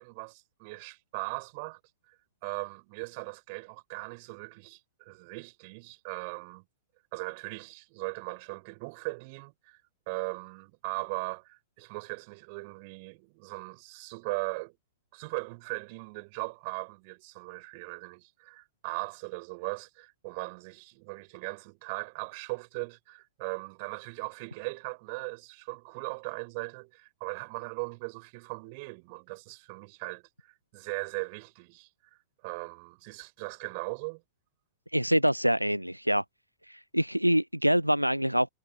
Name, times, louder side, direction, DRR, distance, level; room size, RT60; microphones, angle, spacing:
voice 1, 0.0-1.8 2.1-6.6 7.1-9.8 10.1-14.8 15.1-34.2, right 30 dB, 45° right, 7.3 m, -39 dB
voice 2, 34.9-36.2 36.7-38.5, equal, 90° right, 0.4 m, -25 dB
figure-of-eight pair, 90°, 0 cm